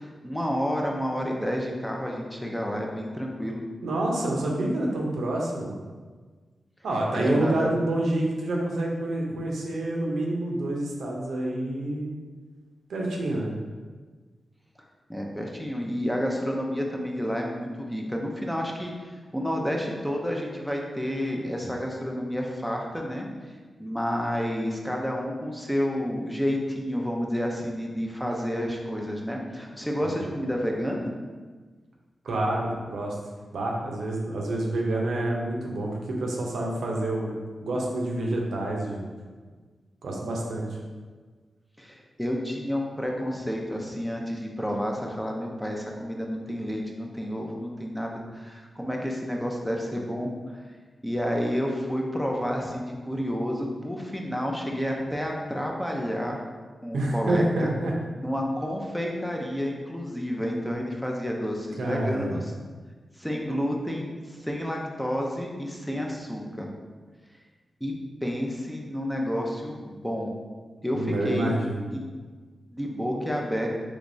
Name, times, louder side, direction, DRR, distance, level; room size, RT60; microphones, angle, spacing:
voice 1, 0.0-3.6 7.1-7.7 9.3-9.4 15.1-23.3 23.8-31.1 41.8-50.6 51.0-56.4 56.8-57.7 58.1-62.5 63.2-66.7 67.8-67.9 68.2-70.3 70.8-71.5 71.9-72.0 72.7-73.7, equal, 5° left, 0 dB, 0.5 m, -30 dB
voice 2, 3.8-5.7 6.8-12.1 12.9-13.5 30.0-30.3 32.2-33.2 33.5-37.4 37.6-39.0 40.0-40.8 56.9-57.9 61.8-62.4 70.9-71.8, right 1 dB, 90° right, -2 dB, 0.5 m, -28 dB
3.3 x 3.0 x 2.6 m, 1.4 s
cardioid pair, 60°, 0 cm